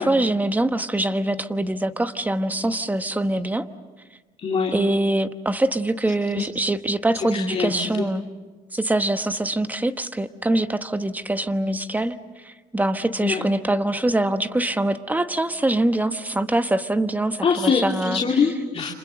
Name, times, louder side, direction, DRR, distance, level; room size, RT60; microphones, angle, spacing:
voice 1, 0.0-3.6 4.7-8.2 8.7-18.2, right 1 dB, 10° right, 10 dB, 1.1 m, -24 dB
voice 2, 4.4-4.8 6.4-6.5 7.2-8.1 13.2-13.5 17.4-18.9, left 5 dB, 35° left, -1 dB, 2.8 m, -24 dB
29.5 x 26.5 x 6.5 m, 1.3 s
cardioid pair, 110°, 17 cm